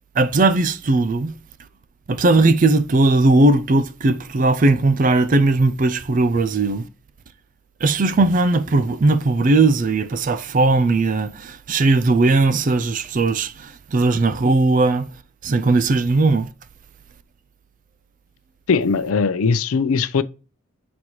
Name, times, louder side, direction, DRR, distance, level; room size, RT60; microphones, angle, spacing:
voice 1, 0.2-1.3 2.1-6.9 7.8-15.1 15.4-16.5, right 2 dB, 40° right, 0.4 m, -18 dB
voice 2, 18.7-20.2, left 5 dB, 90° left, 0.5 m, -19 dB
7.6 x 4.1 x 3.1 m
head